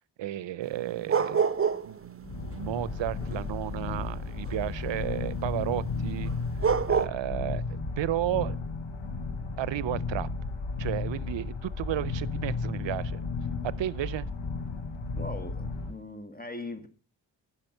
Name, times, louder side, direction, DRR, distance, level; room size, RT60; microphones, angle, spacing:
voice 1, 0.2-1.5 1.8-6.3 6.9-8.6 9.6-10.3 10.8-13.2 13.6-14.3, right 13 dB, 75° right, 0.6 m, -33 dB
sound 1, 0.6-2.0 2.2-4.7 6.3-6.4 6.6-7.1, right 6 dB, 30° right, 0.8 m, -27 dB
sound 2, 2.2-15.9, left 3 dB, 80° left, 1.3 m, -34 dB
voice 2, 15.2-16.9, left 2 dB, 20° left, 1.6 m, -40 dB
10.5 x 6.0 x 6.5 m
cardioid pair, 50°, 45 cm